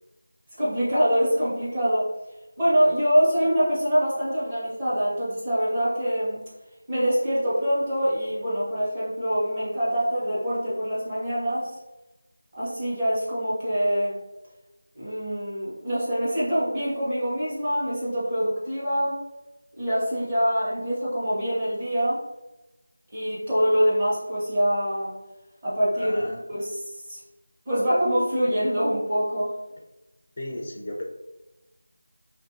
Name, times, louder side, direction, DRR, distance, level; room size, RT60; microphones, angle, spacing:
voice 1, 0.6-2.1 2.6-6.4 6.9-11.8 12.5-14.2 15.0-19.2 19.7-22.2 23.1-25.1 25.6-26.2 26.5-27.2 27.7-29.5, equal, 20° right, -10 dB, 0.9 m, -24 dB
voice 2, 25.9-26.4 30.4-31.0, left 1 dB, 35° left, -1 dB, 0.4 m, -34 dB
3.1 x 2.5 x 2.6 m, 1.0 s
figure-of-eight pair, 175°, 0 cm